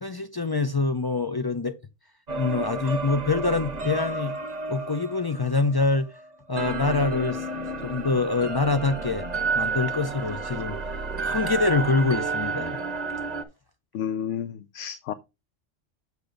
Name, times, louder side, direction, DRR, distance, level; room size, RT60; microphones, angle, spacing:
voice 1, 0.0-1.8 2.4-4.4 4.7-6.1 6.5-7.4 7.8-9.3 9.5-10.8 11.2-12.8, left 3 dB, 40° left, 0.3 m, -25 dB
sound 1, 2.3-6.2 6.6-13.4, right 3 dB, 35° right, 1.0 m, -31 dB
voice 2, 13.9-15.1, left 9 dB, 75° left, 0.9 m, -31 dB
6.9 x 6.5 x 3.8 m
omnidirectional pair, 1.2 m